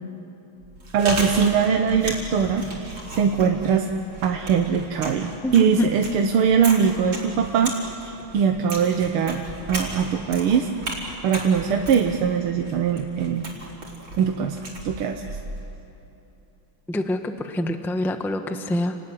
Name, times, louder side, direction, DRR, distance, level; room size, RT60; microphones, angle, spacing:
Chewing mastication, 0.6-15.7, right 2 dB, 60° right, 5.1 m, -35 dB
voice 1, 0.9-3.9 4.2-7.7 8.0-10.7 11.2-13.5 14.2-15.4, right 7 dB, 90° right, 4 dB, 1.9 m, -22 dB
voice 2, 5.4-5.9 16.9-19.0, left 1 dB, ahead, 7 dB, 0.7 m, -26 dB
30.0 x 19.5 x 9.9 m, 3.0 s
omnidirectional pair, 2.3 m